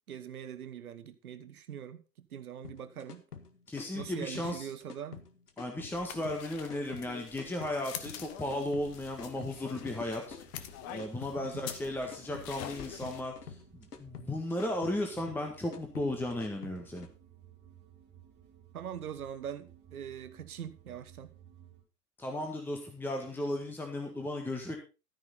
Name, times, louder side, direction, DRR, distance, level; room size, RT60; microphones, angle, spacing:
voice 1, 0.1-3.2 3.9-5.2 11.4-11.7 18.7-21.3, right 9 dB, 60° right, 1.3 m, -42 dB
sound 1, 2.6-17.1, left 6 dB, 70° left, 1.9 m, -48 dB
voice 2, 3.7-4.7 5.6-10.4 10.9-13.3 13.7-17.1 22.2-24.8, left 1 dB, 5° left, 1.6 m, -35 dB
sound 2, 5.9-13.2, left 10 dB, 30° left, 1.3 m, -46 dB
sound 3, 8.4-21.8, right 9 dB, 20° right, 4.0 m, -58 dB
13.0 x 9.8 x 4.0 m
figure-of-eight pair, 105°, 48 cm